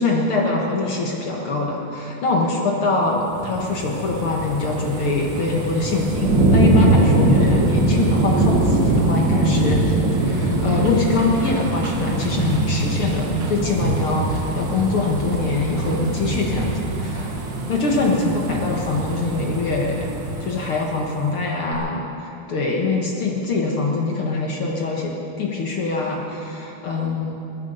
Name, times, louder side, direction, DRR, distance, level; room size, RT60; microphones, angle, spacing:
voice 1, 0.0-16.7 17.0-17.3 17.7-20.0 20.4-27.3, left 3 dB, 60° left, -1 dB, 1.4 m, -23 dB
sound 1, 3.2-21.3 21.7-21.8, right 2 dB, 70° right, 1.0 m, -22 dB
19.0 x 10.5 x 6.8 m, 2.9 s
omnidirectional pair, 4.4 m